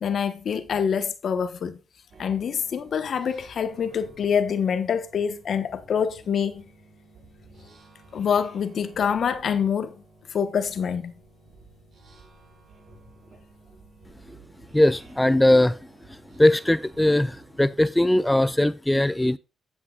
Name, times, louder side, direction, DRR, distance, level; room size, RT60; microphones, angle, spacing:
voice 1, 0.0-1.8 2.2-6.7 8.1-10.0 10.3-11.1, left 7 dB, 65° left, 1.1 m, -26 dB
sound 1, 2.1-18.5, right 2 dB, 60° right, 5.7 m, -52 dB
voice 2, 14.7-15.8 16.1-19.4, left 1 dB, 10° left, 0.4 m, -20 dB
15.5 x 5.9 x 2.4 m
cardioid pair, 65°, 0 cm